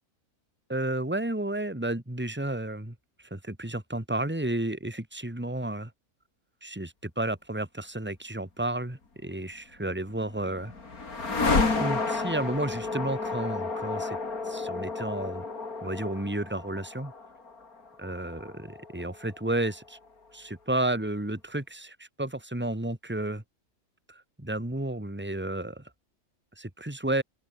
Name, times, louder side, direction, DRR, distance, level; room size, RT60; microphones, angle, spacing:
voice 1, 0.7-2.9 3.3-5.9 6.6-10.7 11.8-14.2 14.4-15.4 15.8-17.1 18.0-20.0 20.3-23.4 24.1-25.8 26.6-27.2, right 1 dB, 5° right, 2.8 m, -32 dB
sound 1, 9.9-20.0, left 3 dB, 80° left, 3.8 m, -31 dB
open air
omnidirectional pair, 1.5 m